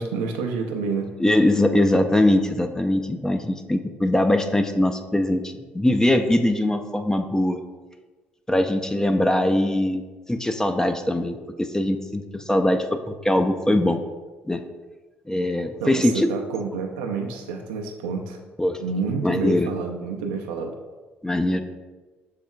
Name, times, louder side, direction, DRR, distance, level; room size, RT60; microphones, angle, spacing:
voice 1, 0.0-1.1 15.8-18.4 18.8-20.8, right 4 dB, 85° right, 3 dB, 0.4 m, -28 dB
voice 2, 1.2-7.6 8.5-10.0 10.3-14.0 14.5-14.6 15.3-16.3 18.6-18.8 19.2-19.7 21.2-21.6, left 1 dB, 10° left, 7 dB, 0.4 m, -21 dB
6.4 x 3.5 x 2.2 m, 1.3 s
hypercardioid pair, 55°, 5 cm